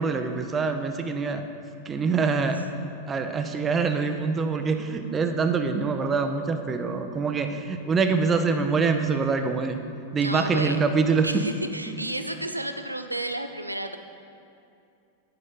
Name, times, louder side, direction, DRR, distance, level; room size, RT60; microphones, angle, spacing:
voice 1, 0.0-1.5 1.9-2.7 3.1-9.8 10.1-11.4 11.9-12.0, right 4 dB, 20° right, 7 dB, 0.6 m, -25 dB
voice 2, 10.2-10.8 11.2-14.0, right 1 dB, 85° right, 8 dB, 0.5 m, -32 dB
9.5 x 5.3 x 5.6 m, 2.6 s
figure-of-eight pair, 90°, 0 cm